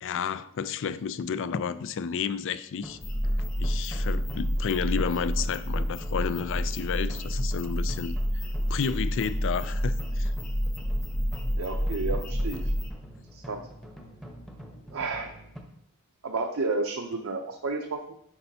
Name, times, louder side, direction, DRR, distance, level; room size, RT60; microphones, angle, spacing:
voice 1, 0.0-3.0 3.6-8.2 8.7-10.3, left 6 dB, 60° left, 0.4 m, -31 dB
sound 1, 2.8-15.6, equal, ahead, 0.9 m, -46 dB
sound 2, 3.0-12.9, equal, 40° left, 1.1 m, -29 dB
voice 2, 11.6-12.7 13.3-13.7 14.9-15.3 16.2-18.1, right 3 dB, 70° right, 0.7 m, -31 dB
9.8 x 5.5 x 2.8 m
head